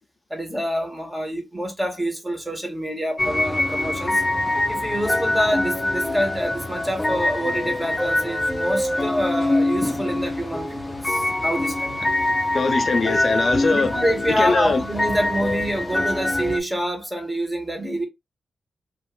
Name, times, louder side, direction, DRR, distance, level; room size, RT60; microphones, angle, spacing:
voice 1, 0.3-4.2 4.7-12.0 13.7-18.1, equal, 10° right, 1.3 m, -26 dB
sound 1, 3.2-16.6, left 1 dB, 20° left, 0.7 m, -24 dB
voice 2, 12.5-14.0 14.4-14.8, left 4 dB, 60° left, 0.5 m, -22 dB
2.5 x 2.5 x 3.1 m
cardioid pair, 55°, 0 cm